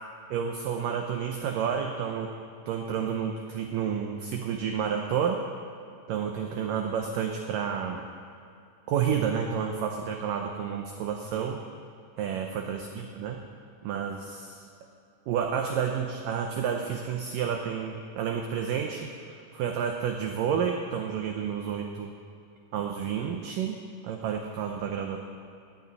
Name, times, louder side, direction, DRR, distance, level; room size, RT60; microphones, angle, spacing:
voice 1, 0.3-2.3 2.7-5.4 6.1-8.1 8.9-11.6 12.2-13.4 13.8-14.6 15.3-22.1 22.7-25.2, right 7 dB, 75° right, 3 dB, 2.2 m, -30 dB
16.5 x 6.8 x 9.7 m, 2.5 s
omnidirectional pair, 4.5 m